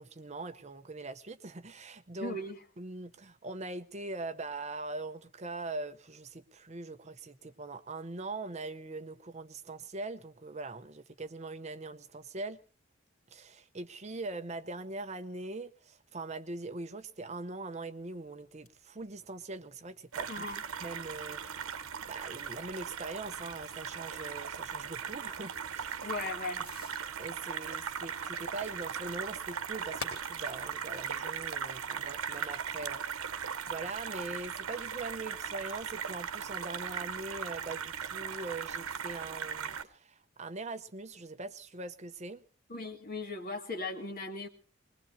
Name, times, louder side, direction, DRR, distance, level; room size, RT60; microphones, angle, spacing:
voice 1, 0.0-2.4 2.8-12.6 13.3-20.5 20.8-26.1 27.2-42.4, right 3 dB, 30° right, 0.7 m, -42 dB
voice 2, 2.2-2.6 20.3-20.6 26.0-26.7 42.7-44.5, left 2 dB, 45° left, 2.1 m, -38 dB
Fireworks, 17.9-32.5, left 3 dB, 80° left, 3.6 m, -54 dB
sound 1, 20.1-39.8, right 7 dB, 85° right, 1.0 m, -38 dB
21.0 x 21.0 x 2.7 m
head